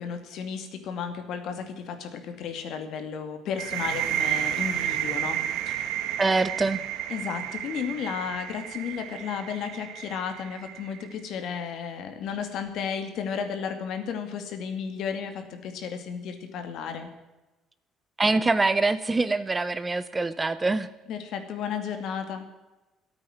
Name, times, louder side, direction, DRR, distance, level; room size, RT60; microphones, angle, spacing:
voice 1, 0.0-5.4 5.7-5.8 7.1-17.1 21.1-22.5, left 7 dB, 60° left, 7 dB, 2.4 m, -33 dB
sound 1, 3.6-11.1, right 11 dB, 85° right, 1.2 m, -31 dB
voice 2, 6.2-6.8 18.2-20.9, right 3 dB, 15° right, 14 dB, 0.6 m, -24 dB
13.5 x 8.8 x 9.2 m, 1.1 s
cardioid pair, 150°, 0 cm